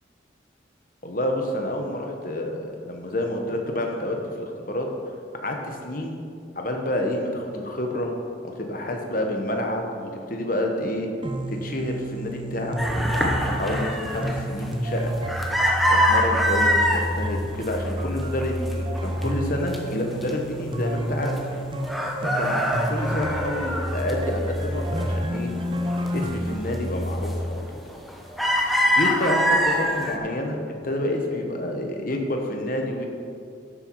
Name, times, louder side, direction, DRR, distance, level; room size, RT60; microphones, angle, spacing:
voice 1, 1.0-4.9 5.4-6.2 6.5-8.1 8.4-11.1 11.6-15.1 15.9-21.4 22.2-22.6 22.9-25.5 26.1-27.6 28.9-30.6 30.8-33.1, left 1 dB, 45° left, 2 dB, 1.3 m, -28 dB
sound 1, 11.2-27.2, equal, 25° right, 0.7 m, -30 dB
sound 2, 12.8-17.1 17.5-18.1 18.4-19.8 20.2-20.3 20.6-21.6 21.8-24.6 25.0-26.1 26.5-26.8 27.2-27.6 27.9-30.2, equal, ahead, 0.9 m, -24 dB
12.0 x 8.1 x 4.7 m, 2.4 s
head